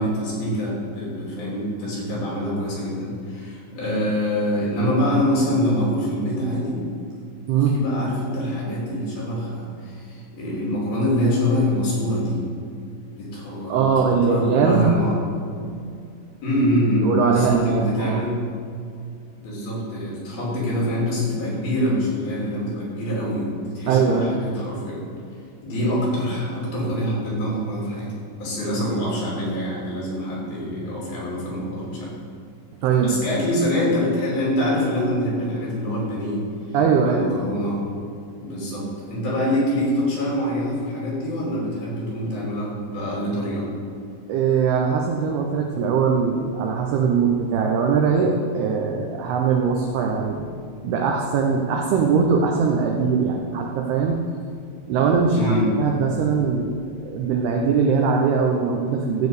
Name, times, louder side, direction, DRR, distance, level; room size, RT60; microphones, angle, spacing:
voice 1, 0.0-6.8 7.7-12.4 13.2-15.2 16.4-18.4 19.4-23.5 23.7-25.0 25.6-28.1 28.4-32.1 33.0-36.4 37.0-37.8 38.4-43.7 55.3-55.7, equal, 50° left, -5 dB, 4.7 m, -25 dB
voice 2, 13.7-15.0 17.0-18.2 23.9-24.4 32.8-33.2 36.7-37.3 44.3-50.5 50.8-54.2 54.9-59.3, right 5 dB, 85° right, 1 dB, 2.3 m, -21 dB
14.5 x 5.3 x 7.9 m, 2.4 s
omnidirectional pair, 5.7 m